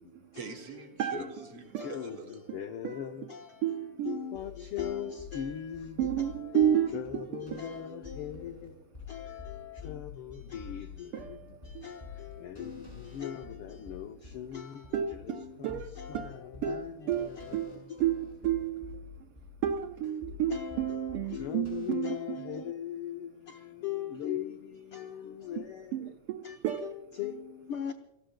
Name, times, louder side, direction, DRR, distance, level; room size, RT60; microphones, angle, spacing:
voice 1, 0.3-2.4, right 5 dB, 50° right, 2.6 m, -44 dB
voice 2, 1.8-18.0 20.5-26.0 26.4-27.9, left 9 dB, 75° left, 1.2 m, -39 dB
voice 3, 2.8-4.2 6.0-7.7 11.1-11.5 11.7-11.9 14.9-19.1 19.6-22.6 25.6-25.7 25.9-26.9, right 11 dB, 75° right, 1.3 m, -32 dB
microphone beat, 4.3-21.9, left 6 dB, 10° left, 6.6 m, -48 dB
30.0 x 19.5 x 2.3 m
omnidirectional pair, 3.5 m